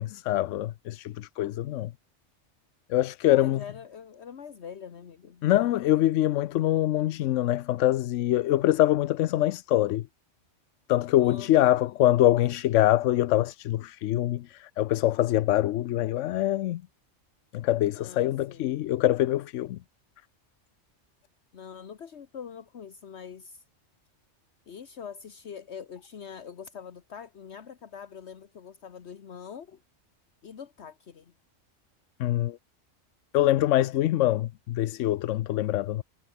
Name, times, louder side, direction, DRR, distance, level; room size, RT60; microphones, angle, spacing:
voice 1, 0.0-1.9 2.9-3.6 5.4-10.1 10.9-16.8 17.5-19.8 32.2-32.6 33.3-36.0, left 14 dB, 90° left, 0.9 m, -24 dB
voice 2, 3.3-5.4 11.2-11.8 17.9-18.8 21.5-23.6 24.7-29.8 30.4-31.3, left 7 dB, 65° left, 1.4 m, -44 dB
omnidirectional pair, 1.2 m